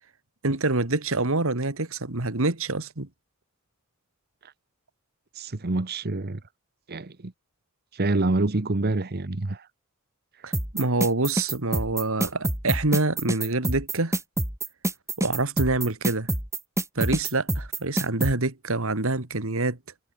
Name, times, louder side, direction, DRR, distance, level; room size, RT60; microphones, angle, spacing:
voice 1, 0.4-3.1 10.4-14.2 15.2-16.3 17.0-19.8, right 2 dB, 65° right, 2.2 m, -26 dB
voice 2, 5.3-6.4 6.9-7.3 7.9-9.7 10.4-10.5, right 2 dB, 45° right, 1.1 m, -27 dB
sound 1, 10.5-18.3, right 1 dB, 15° right, 2.8 m, -26 dB
head